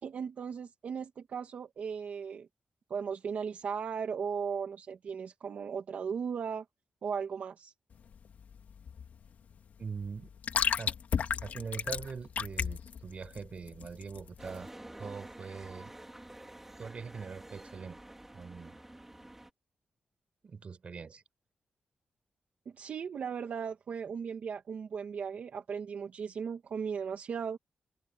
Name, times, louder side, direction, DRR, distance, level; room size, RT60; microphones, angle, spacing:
voice 1, 0.0-2.5 2.9-6.7 7.0-7.7 22.7-27.6, right 6 dB, 60° right, 2.2 m, -37 dB
sound 1, 7.9-14.6, left 7 dB, 65° left, 2.5 m, -35 dB
voice 2, 9.8-10.3 10.8-10.9 11.4-14.7 15.0-15.9 16.8-18.0 18.3-18.8 20.4-21.2, right 5 dB, 45° right, 5.3 m, -42 dB
sound 2, 14.4-19.5, right 1 dB, 10° right, 3.6 m, -49 dB
open air
wide cardioid pair, 145°, 3 cm